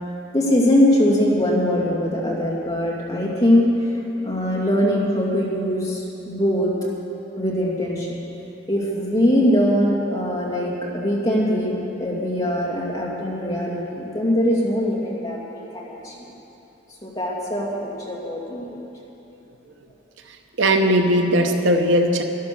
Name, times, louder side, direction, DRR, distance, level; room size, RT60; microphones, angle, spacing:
voice 1, 0.3-3.7 4.2-6.7 7.4-8.2 8.7-16.3 17.0-18.8, equal, 20° left, -5 dB, 2.6 m, -22 dB
voice 2, 20.3-22.2, equal, 80° right, 5 dB, 0.9 m, -19 dB
12.5 x 11.5 x 6.9 m, 3.0 s
head